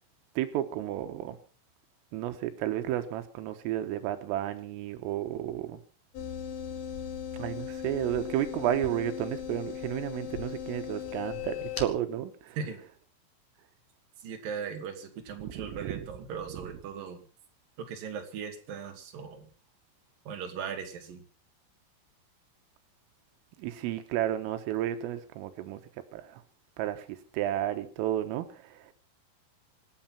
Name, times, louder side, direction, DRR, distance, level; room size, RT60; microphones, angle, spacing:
voice 1, 0.4-1.4 2.1-5.8 7.4-12.6 15.4-16.0 23.6-25.8 26.1-26.4 26.8-28.9, right 12 dB, 90° right, 8 dB, 3.9 m, -32 dB
sound 1, 6.1-11.8, left 9 dB, 55° left, 3.0 m, -38 dB
voice 2, 14.2-17.2 17.9-19.5 20.3-21.2, right 6 dB, 50° right, 3 dB, 3.8 m, -38 dB
26.0 x 8.6 x 5.7 m, 0.40 s
omnidirectional pair, 5.7 m